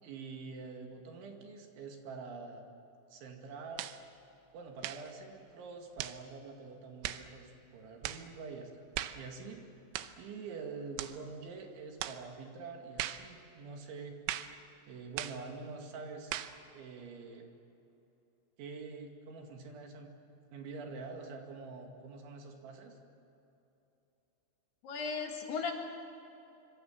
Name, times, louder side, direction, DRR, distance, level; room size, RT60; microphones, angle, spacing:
voice 1, 0.0-2.7 3.1-3.9 4.5-8.7 9.2-9.6 10.2-14.2 14.9-16.3 16.7-17.5 18.6-20.1 20.5-23.0, right 4 dB, 70° right, 3 dB, 4.4 m, -46 dB
sound 1, 3.8-4.0 4.8-5.1 6.0-6.2 7.0-7.3 8.0-8.3 8.9-9.2 9.9-10.2 11.0-11.2 12.0-12.2 13.0-13.3 14.3-14.6 15.2-15.4 16.3-16.6, right 14 dB, 90° right, 3.7 m, -38 dB
voice 2, 24.8-25.7, left 5 dB, 60° left, 2 dB, 3.4 m, -36 dB
26.0 x 25.5 x 7.5 m, 2.9 s
omnidirectional pair, 5.9 m